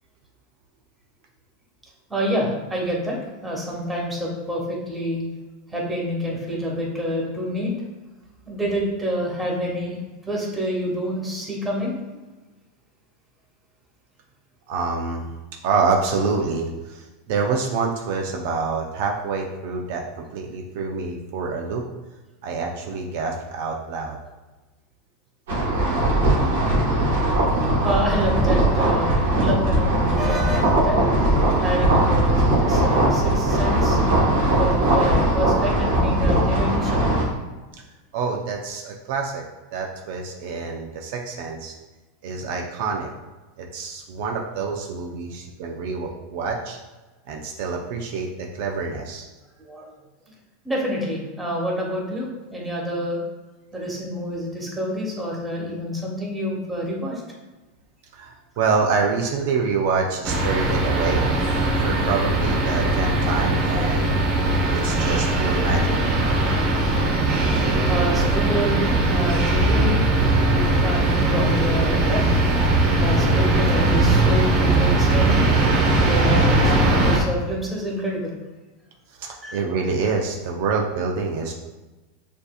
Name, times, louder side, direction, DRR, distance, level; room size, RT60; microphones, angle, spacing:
voice 1, 2.1-5.2 5.7-7.7 8.4-10.0 10.3-12.0 27.8-31.0 31.6-34.0 34.6-37.0 49.7-49.9 50.6-53.2 53.7-57.2 67.9-70.0 70.5-72.2 73.0-75.4 76.0-78.3 79.4-79.5, equal, 10° right, -3 dB, 1.4 m, -27 dB
voice 2, 14.7-15.3 15.6-21.8 22.4-24.2 38.1-39.4 39.7-41.7 42.2-43.1 43.6-46.8 47.3-49.3 58.1-61.3 61.8-64.3 64.7-66.0 79.2-81.5, right 4 dB, 65° right, 1 dB, 0.5 m, -26 dB
sound 1, 25.5-37.3, right 1 dB, 80° right, 1.3 m, -20 dB
sound 2, 60.2-77.2, right 2 dB, 45° right, 1.1 m, -20 dB
6.5 x 2.7 x 2.4 m, 1.2 s
hypercardioid pair, 115°, 0 cm